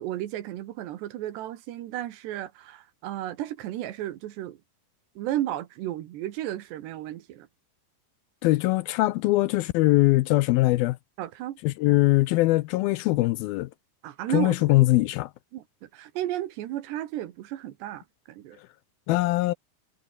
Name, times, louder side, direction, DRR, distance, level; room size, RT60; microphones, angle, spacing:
voice 1, 0.0-4.6 5.2-7.5 11.2-11.6 11.9-12.0 14.0-14.9 15.5-18.6, right 13 dB, 85° right, 3.6 m, -33 dB
voice 2, 8.4-11.0 11.6-13.7 14.3-15.3 19.1-19.5, left 19 dB, 80° left, 2.2 m, -22 dB
omnidirectional pair, 4.9 m